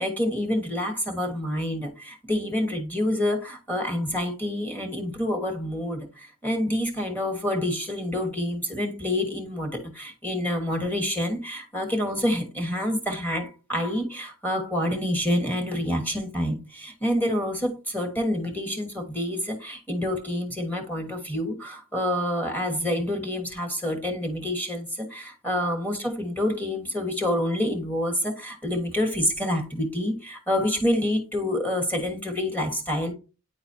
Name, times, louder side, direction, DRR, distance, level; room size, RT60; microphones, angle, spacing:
voice 1, 0.0-33.1, left 1 dB, 10° left, 1.3 m, -27 dB
9.2 x 4.0 x 2.7 m
head